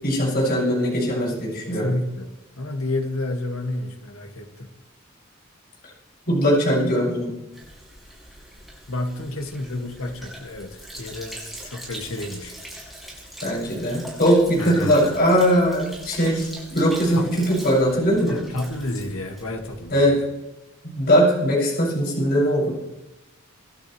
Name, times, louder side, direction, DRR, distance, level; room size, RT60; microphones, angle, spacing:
voice 1, 0.0-1.9 6.3-7.3 13.4-18.4 19.9-20.2 20.8-22.7, equal, 45° left, -4 dB, 6.8 m, -20 dB
voice 2, 1.8-4.7 8.9-12.5 14.6-15.2 17.1-17.6 18.3-20.3, left 2 dB, 75° left, 3 dB, 2.1 m, -30 dB
Sink (filling or washing), 7.5-19.9, right 1 dB, ahead, 5.7 m, -42 dB
25.0 x 12.0 x 3.3 m, 1.0 s
head